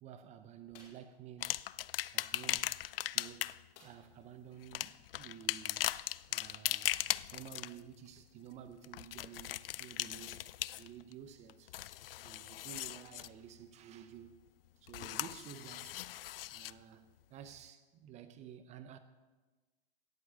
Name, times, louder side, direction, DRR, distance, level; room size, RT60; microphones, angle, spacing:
voice 1, 0.0-1.5 2.1-2.7 3.1-3.5 3.8-6.0 6.3-6.9 7.3-10.5 10.8-11.8 12.2-14.4 14.8-16.0 16.5-19.0, right 9 dB, 20° right, 0.7 m, -52 dB
sound 1, 0.7-1.1 3.7-4.3 4.7-4.8 5.2-5.4, left 4 dB, 45° left, 5.0 m, -60 dB
sound 2, 1.4-3.7 4.6-7.8 8.8-11.1 11.5-13.3 14.9-16.7 17.5-17.6, left 14 dB, 65° left, 0.5 m, -38 dB
17.0 x 8.0 x 6.3 m
hypercardioid pair, 125°, 31 cm